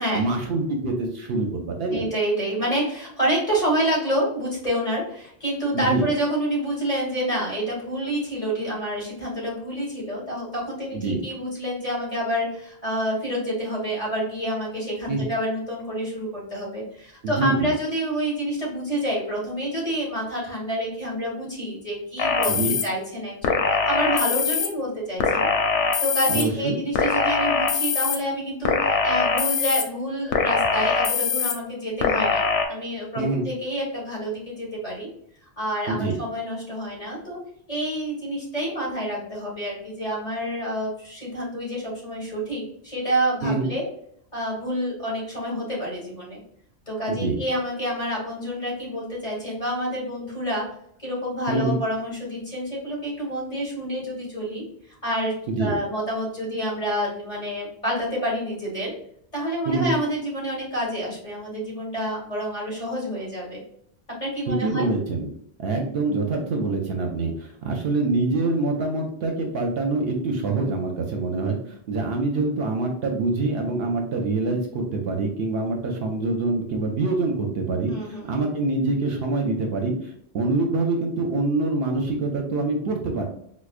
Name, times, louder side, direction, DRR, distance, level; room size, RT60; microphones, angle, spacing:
voice 1, 0.1-2.1 5.7-6.1 10.9-11.3 15.1-15.2 17.2-17.7 22.5-22.7 26.3-26.8 33.2-33.5 35.9-36.2 43.4-43.7 47.1-47.4 51.5-51.8 55.5-55.8 59.7-59.9 64.5-65.3 65.6-83.2, right 3 dB, 65° right, 2 dB, 0.8 m, -25 dB
voice 2, 1.9-25.5 26.0-35.1 35.6-37.4 37.7-43.8 44.3-46.4 46.9-50.7 51.0-55.3 55.6-58.9 59.3-63.6 64.2-64.9 77.9-78.3, equal, 30° left, -6 dB, 1.6 m, -28 dB
sound 1, 22.2-22.8 23.4-24.7 25.2-26.4 26.9-28.2 28.6-29.8 30.3-31.5 32.0-32.6, left 5 dB, 85° left, 0.9 m, -22 dB
4.7 x 2.1 x 2.4 m, 0.68 s
omnidirectional pair, 1.2 m